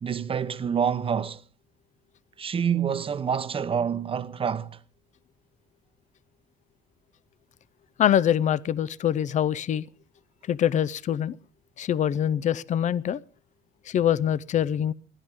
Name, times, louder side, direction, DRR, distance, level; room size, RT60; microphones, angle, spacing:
voice 1, 0.0-1.4 2.4-4.8, right 7 dB, 35° right, 1.0 m, -27 dB
voice 2, 8.0-9.8 10.5-11.4 11.8-13.2 13.9-14.9, left 10 dB, 45° left, 0.6 m, -24 dB
21.0 x 13.5 x 3.6 m
cardioid pair, 110°, 17 cm